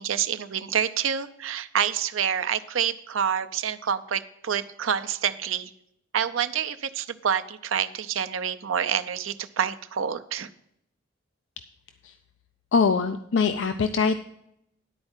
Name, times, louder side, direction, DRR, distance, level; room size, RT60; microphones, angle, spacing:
voice 1, 0.0-5.7 6.1-10.5, right 8 dB, 85° right, 10 dB, 0.6 m, -27 dB
voice 2, 12.7-14.2, left 5 dB, 70° left, 9 dB, 0.5 m, -22 dB
11.0 x 4.4 x 7.3 m, 0.75 s
head